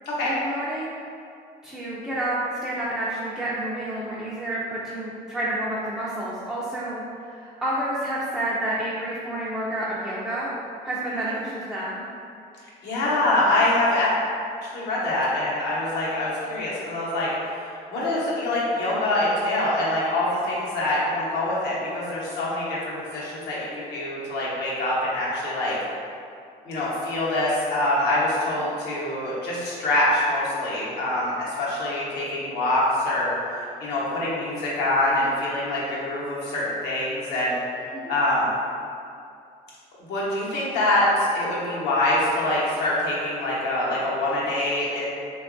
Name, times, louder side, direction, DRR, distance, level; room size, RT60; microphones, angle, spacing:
voice 1, 0.3-1.0 1.6-2.4 2.6-10.5 10.8-12.0 37.9-38.1, right 1 dB, 5° right, -8 dB, 0.4 m, -29 dB
voice 2, 12.8-14.1 14.6-25.8 26.6-33.3 33.8-37.6 38.1-38.5 40.1-45.1, left 1 dB, 80° left, -7 dB, 0.8 m, -25 dB
2.8 x 2.3 x 2.5 m, 2.5 s
cardioid pair, 110°, 17 cm